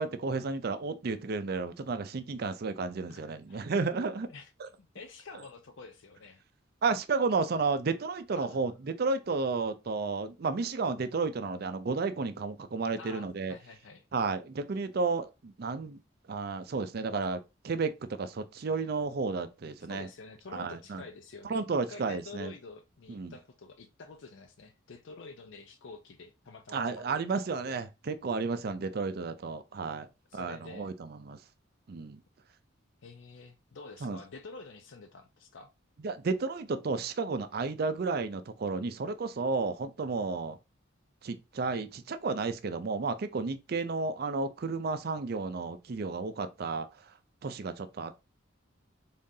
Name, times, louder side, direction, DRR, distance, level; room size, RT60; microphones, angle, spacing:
voice 1, 0.0-4.3 4.6-4.7 6.8-13.5 14.1-16.0 16.3-20.1 20.5-21.0 21.4-22.5 23.1-23.3 26.7-31.4 31.9-32.2 34.0-34.2 36.0-40.6 41.2-47.1 47.4-48.2, right 4 dB, 50° right, 0.4 m, -32 dB
voice 2, 3.1-3.7 4.3-4.5 4.8-6.4 8.3-8.6 13.0-14.0 19.9-27.0 27.4-27.8 30.3-30.9 33.0-35.7, left 4 dB, 65° left, 0.5 m, -48 dB
3.8 x 3.7 x 2.7 m
head